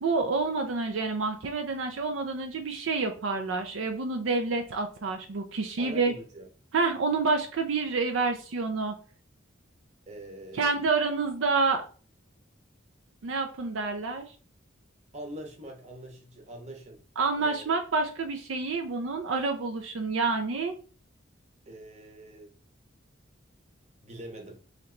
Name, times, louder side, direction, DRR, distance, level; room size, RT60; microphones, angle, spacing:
voice 1, 0.0-6.1 6.7-8.9 10.5-11.8 13.2-14.3 17.2-20.7, right 4 dB, 75° right, 5 dB, 0.5 m, -28 dB
voice 2, 5.8-6.5 10.1-10.7 15.1-17.0 17.4-17.7 21.7-22.5 24.0-24.6, right 1 dB, 35° right, 3 dB, 0.9 m, -43 dB
3.2 x 2.9 x 3.7 m, 0.39 s
head